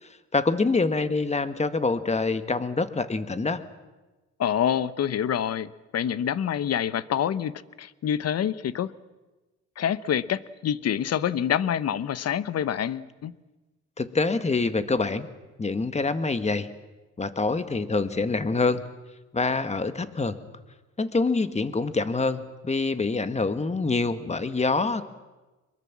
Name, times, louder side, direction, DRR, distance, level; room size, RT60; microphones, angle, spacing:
voice 1, 0.0-3.6 14.0-15.3 15.6-16.7 17.2-18.8 19.3-20.4 21.0-25.0, left 3 dB, 20° left, 11 dB, 1.6 m, -26 dB
voice 2, 4.4-8.9 9.8-13.3, left 9 dB, 55° left, 16 dB, 1.0 m, -27 dB
24.0 x 22.5 x 7.4 m, 1.2 s
cardioid pair, 90°, 30 cm